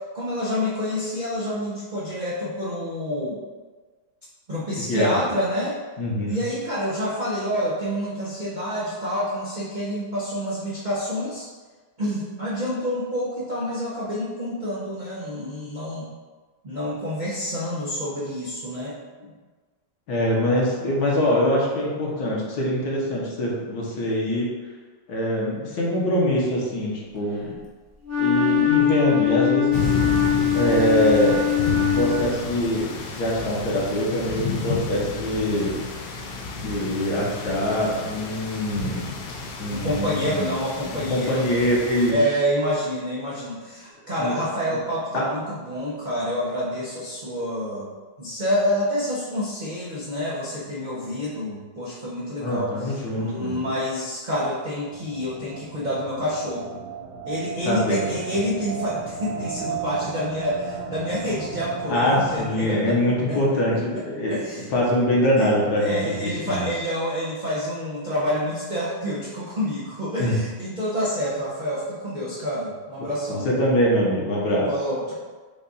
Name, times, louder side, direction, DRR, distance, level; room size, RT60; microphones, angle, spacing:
voice 1, 0.0-3.4 4.5-5.8 6.3-11.5 12.0-16.1 16.6-19.3 39.7-41.5 42.1-47.9 48.2-56.8 57.3-63.6 63.9-64.7 65.4-65.5 65.8-73.5 74.7-75.1, equal, 80° right, -9 dB, 0.4 m, -28 dB
voice 2, 6.0-6.4 20.1-24.5 25.1-27.6 28.2-29.9 30.5-35.8 36.5-39.2 39.6-40.5 40.9-42.1 44.2-44.4 45.1-45.2 52.4-53.6 57.6-58.0 61.9-64.4 64.7-66.7 70.2-70.4 73.3-74.7, equal, 60° left, -4 dB, 1.3 m, -23 dB
Wind instrument woodwind instrument, 28.0-32.5, left 9 dB, 10° right, 0.8 m, -22 dB
sound 1, 29.7-42.1, left 3 dB, 75° left, 1.3 m, -31 dB
sound 2, 54.8-62.4, right 6 dB, 65° right, 1.2 m, -34 dB
5.4 x 2.4 x 4.0 m, 1.4 s
omnidirectional pair, 2.1 m